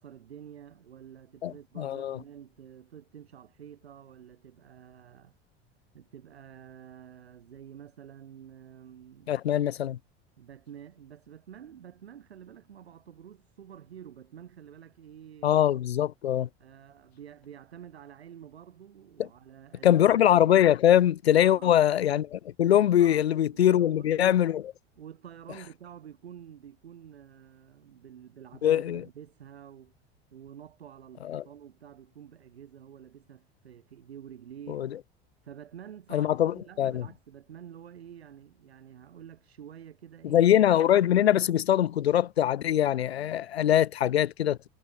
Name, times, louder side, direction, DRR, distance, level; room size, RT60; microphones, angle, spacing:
voice 1, 0.0-5.3 5.9-9.4 10.4-15.6 16.6-20.0 21.4-21.9 23.0-23.3 23.5-24.6 24.9-29.9 30.3-34.9 35.4-40.5, right 9 dB, 85° right, 4.6 m, -48 dB
voice 2, 1.4-2.2 9.3-10.0 15.4-16.5 19.8-24.6 28.6-29.0 31.3-31.4 34.7-34.9 36.1-37.0 40.2-44.6, left 11 dB, 90° left, 0.7 m, -23 dB
hypercardioid pair, 85°, 31 cm